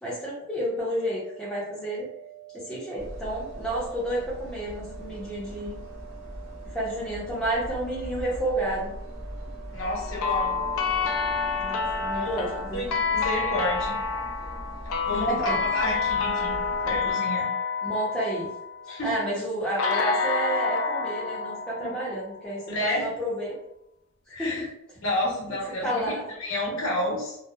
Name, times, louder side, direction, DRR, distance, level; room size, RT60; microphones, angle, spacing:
voice 1, 0.0-2.1 2.5-5.8 6.7-8.9 11.6-12.9 15.1-15.6 15.8-15.9 17.8-18.5 19.0-23.6 24.4-24.7 25.8-26.3, right 1 dB, 5° left, -7 dB, 0.5 m, -30 dB
sound 1, 1.0-11.0, right 19 dB, 35° right, 0.6 m, -47 dB
sound 2, 3.0-17.1, equal, 80° right, 0.7 m, -41 dB
voice 2, 9.7-10.6 12.1-12.4 12.7-14.0 15.1-16.6 16.9-17.5 18.9-19.2 21.8-21.9 22.7-23.1 24.3-24.7 25.0-26.1 26.4-27.4, left 1 dB, 65° left, -4 dB, 0.8 m, -30 dB
sound 3, 9.8-19.0 19.8-22.7, left 5 dB, 85° left, 0.4 m, -28 dB
2.7 x 2.0 x 2.2 m, 0.79 s
head